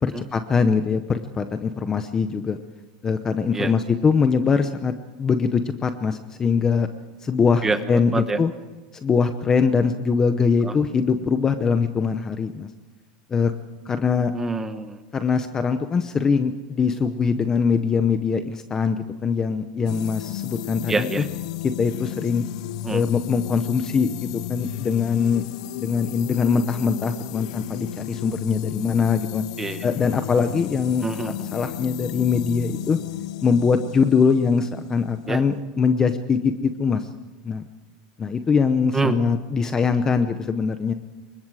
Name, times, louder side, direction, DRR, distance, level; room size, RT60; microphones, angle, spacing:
voice 1, 0.0-2.6 3.0-4.9 5.2-6.9 7.2-8.5 9.0-12.7 13.3-13.5 13.9-14.3 15.1-21.1 21.6-22.4 22.9-25.4 25.8-29.4 29.8-31.0 31.5-33.0 33.4-37.1 37.4-37.6 38.2-40.9, left 5 dB, 15° left, 9 dB, 0.8 m, -22 dB
voice 2, 7.6-8.4 10.6-10.7 14.3-15.0 20.9-21.3 22.8-23.0 29.6-29.9 31.0-31.5 35.3-35.4 38.9-39.2, right 3 dB, 10° right, 9 dB, 1.2 m, -26 dB
sound 1, 19.9-35.6, left 15 dB, 60° left, 0.8 m, -34 dB
28.0 x 24.5 x 4.9 m, 1.2 s
supercardioid pair, 175°, 4 cm